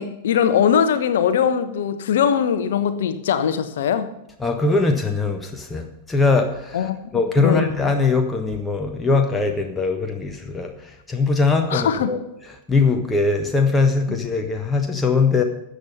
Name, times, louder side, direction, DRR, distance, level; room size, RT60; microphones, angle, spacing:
voice 1, 0.0-4.1 6.7-7.7 11.7-12.1 14.1-14.2, left 8 dB, 60° left, 11 dB, 1.1 m, -21 dB
voice 2, 4.4-12.2 12.7-15.4, left 4 dB, 10° left, 3 dB, 1.4 m, -21 dB
13.5 x 8.4 x 5.5 m, 0.84 s
figure-of-eight pair, 90°, 0 cm